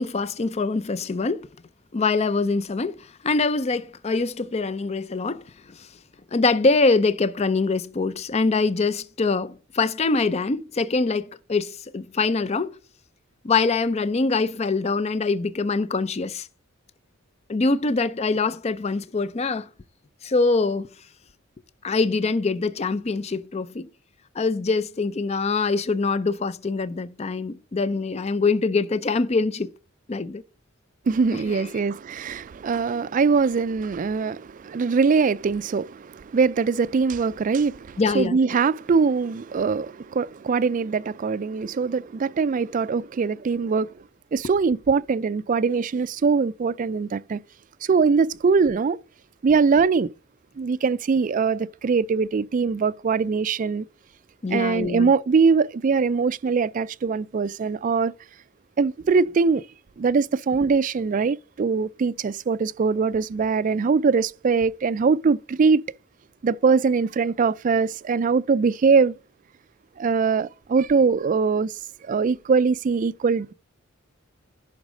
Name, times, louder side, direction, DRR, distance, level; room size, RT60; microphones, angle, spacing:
voice 1, 0.0-1.5 1.9-3.0 3.2-5.4 5.7-5.9 6.3-12.7 13.4-16.5 17.5-19.7 20.2-20.9 21.8-23.9 24.4-29.7 30.1-30.4 31.3-31.7 38.0-38.4 54.4-55.1, left 3 dB, 30° left, 0.5 m, -24 dB
voice 2, 31.1-43.9 44.3-47.4 47.8-49.0 49.4-50.1 50.6-53.9 54.5-58.1 58.8-59.6 60.0-65.8 66.4-69.1 70.0-73.5, right 5 dB, 40° right, 0.3 m, -22 dB
11.0 x 4.0 x 6.2 m
head